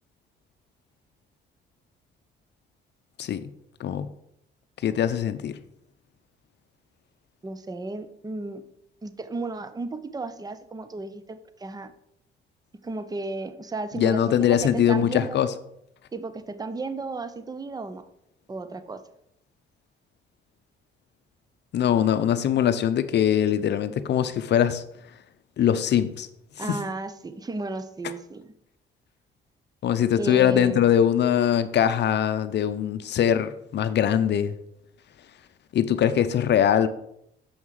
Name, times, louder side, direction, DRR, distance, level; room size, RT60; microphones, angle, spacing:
voice 1, 4.8-5.5 13.9-15.5 21.7-24.8 25.6-26.3 26.6-26.8 29.8-34.5 35.7-36.9, left 9 dB, 60° left, 12 dB, 0.6 m, -22 dB
voice 2, 7.4-8.6 9.0-11.9 12.8-15.4 16.1-18.0 18.5-19.0 26.6-28.5 30.1-30.9, right 3 dB, 20° right, 11 dB, 0.7 m, -34 dB
7.0 x 5.5 x 4.8 m, 0.76 s
cardioid pair, 90°, 20 cm